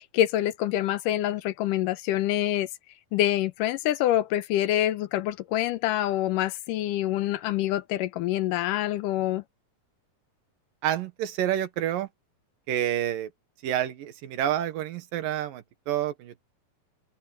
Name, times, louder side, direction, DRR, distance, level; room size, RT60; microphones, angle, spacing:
voice 1, 0.0-2.7 3.1-9.4, left 13 dB, 80° left, 2.3 m, -26 dB
voice 2, 10.8-12.1 12.7-13.3 13.6-16.4, right 11 dB, 85° right, 3.0 m, -28 dB
open air
omnidirectional pair, 3.9 m